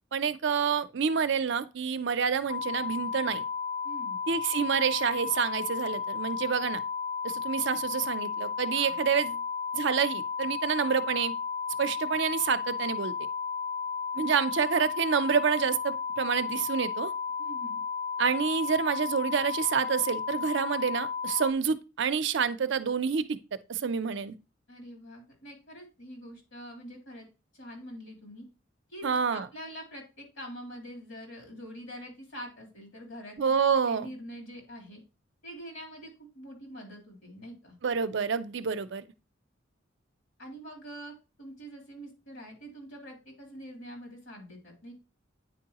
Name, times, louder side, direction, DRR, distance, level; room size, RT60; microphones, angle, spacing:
voice 1, 0.1-3.4 4.3-6.8 7.2-9.4 9.7-11.3 11.8-13.1 14.2-17.1 18.2-23.4 23.7-24.3 29.0-29.5 33.4-34.1 37.8-39.0, right 6 dB, 65° right, 0.5 m, -28 dB
sound 1, 2.5-21.5, left 6 dB, 40° left, 0.3 m, -33 dB
voice 2, 3.8-4.2 8.7-9.0 14.1-14.3 17.4-17.8 24.7-27.3 27.5-28.5 28.9-33.4 33.8-35.0 35.4-37.8 40.4-44.9, equal, 80° left, 3.2 m, -45 dB
9.1 x 4.6 x 2.9 m
head